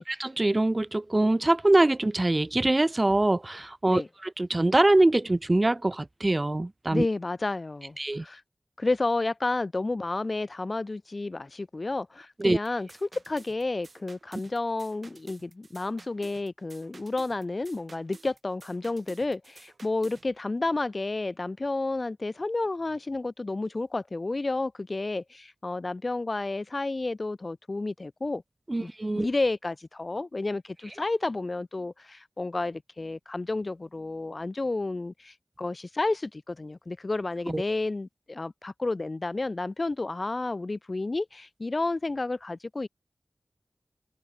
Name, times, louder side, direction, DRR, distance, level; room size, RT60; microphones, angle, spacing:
voice 1, 0.2-4.0 4.4-7.1 8.0-8.2 12.4-12.6 28.7-29.3 37.5-37.6, right 2 dB, 30° right, 0.7 m, -23 dB
voice 2, 6.9-8.4 8.8-28.4 28.8-42.9, left 2 dB, 45° left, 0.9 m, -31 dB
sound 1, 12.6-20.3, right 3 dB, 65° right, 7.7 m, -52 dB
wide cardioid pair, 70°, 0 cm